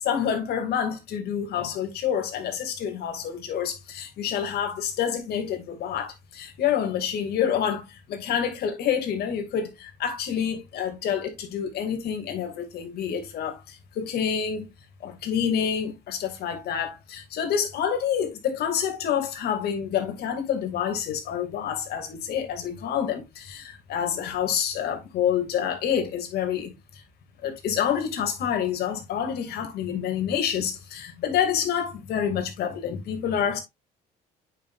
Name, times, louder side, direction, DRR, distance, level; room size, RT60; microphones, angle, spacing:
voice 1, 0.0-14.7 15.0-26.7 27.4-33.6, left 8 dB, 70° left, 2.4 m, -28 dB
8.5 x 5.7 x 2.5 m
cardioid pair, 110°, 17 cm